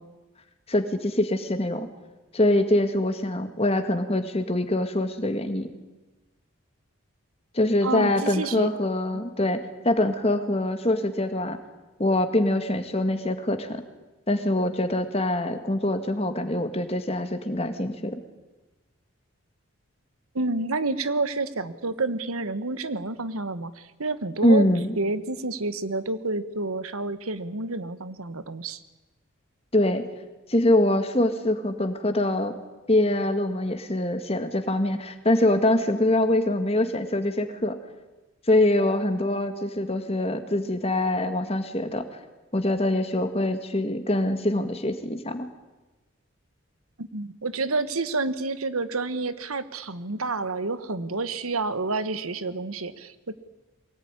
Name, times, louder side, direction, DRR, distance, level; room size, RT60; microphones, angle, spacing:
voice 1, 0.7-1.9 2.3-5.7 7.5-11.6 12.0-13.8 14.3-18.2 24.4-24.9 29.7-30.0 30.5-32.5 32.9-37.8 38.5-42.1 42.5-45.5, left 1 dB, 30° left, 7 dB, 1.9 m, -24 dB
voice 2, 7.8-8.7 20.3-24.6 25.0-28.8 47.0-53.3, right 3 dB, 90° right, 13 dB, 1.4 m, -29 dB
23.0 x 18.5 x 9.9 m, 1.2 s
head